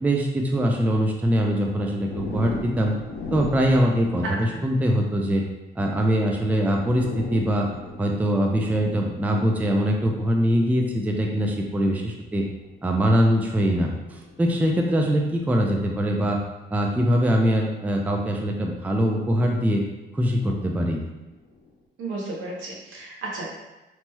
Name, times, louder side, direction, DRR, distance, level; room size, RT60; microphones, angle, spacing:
voice 1, 0.0-2.9 3.3-5.4 5.8-7.7 8.0-12.4 12.8-16.4 16.7-19.8 20.1-21.0, equal, 10° right, 1 dB, 0.4 m, -22 dB
sound 1, 2.1-4.8 6.1-6.2 6.5-10.1 11.0-11.2 12.4-15.4 16.8-17.0 18.7-19.5 20.3-21.7, left 2 dB, 50° left, 0.6 m, -39 dB
voice 2, 22.0-23.5, right 2 dB, 80° right, -3 dB, 0.9 m, -33 dB
3.0 x 2.9 x 2.2 m, 1.0 s
cardioid pair, 90°, 20 cm